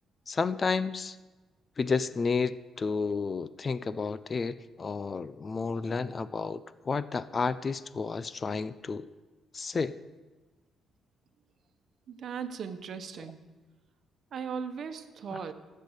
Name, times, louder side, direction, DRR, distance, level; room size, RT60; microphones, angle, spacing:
voice 1, 0.3-1.2 1.8-9.1 9.5-9.9 15.3-15.4, left 4 dB, 35° left, 16 dB, 0.5 m, -31 dB
voice 2, 12.1-13.4 14.3-15.5, right 6 dB, 60° right, 9 dB, 1.1 m, -37 dB
16.0 x 7.5 x 6.5 m, 1.3 s
cardioid pair, 90°, 0 cm